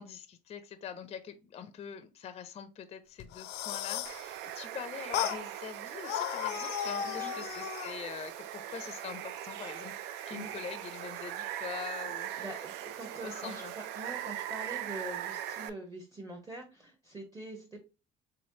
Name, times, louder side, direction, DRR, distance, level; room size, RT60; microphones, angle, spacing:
voice 1, 0.0-9.9 10.3-12.4 13.2-13.7, left 7 dB, 35° left, 0.4 m, -44 dB
sound 1, 3.2-4.2 5.1-5.4 6.0-8.0, left 10 dB, 90° left, 0.5 m, -35 dB
Water, 4.0-15.7, right 11 dB, 90° right, 0.4 m, -40 dB
voice 2, 7.0-7.4 10.3-10.5 12.4-13.6 13.9-17.8, right 2 dB, 20° right, 0.9 m, -44 dB
3.6 x 3.2 x 2.7 m
cardioid pair, 110°, 17 cm